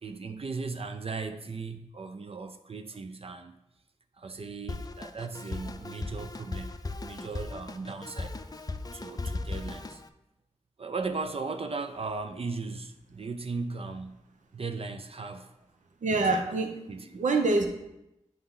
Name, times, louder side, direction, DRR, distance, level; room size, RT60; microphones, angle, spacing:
voice 1, 0.0-3.6 4.2-10.0 10.8-15.5 16.1-16.5 16.9-17.3, right 4 dB, 50° right, 0.5 m, -37 dB
Drum kit, 4.7-10.1, left 3 dB, 30° left, 0.4 m, -37 dB
voice 2, 16.0-17.7, right 3 dB, 90° right, 0.7 m, -26 dB
7.7 x 2.8 x 5.4 m
cardioid pair, 45°, 12 cm